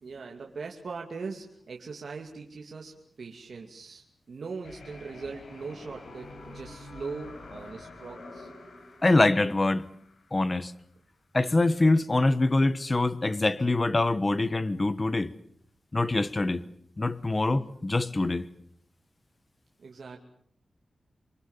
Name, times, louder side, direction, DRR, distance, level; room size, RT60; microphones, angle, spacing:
voice 1, 0.0-8.5 17.3-17.4 19.8-20.2, right 4 dB, 65° right, 2.6 m, -40 dB
sound 1, 4.6-10.6, left 2 dB, 80° left, 5.4 m, -47 dB
voice 2, 9.0-9.9 10.3-10.7 11.3-15.3 15.9-16.6 17.0-18.5, left 2 dB, 25° left, 1.2 m, -24 dB
27.5 x 24.5 x 7.4 m
wide cardioid pair, 150°, 0 cm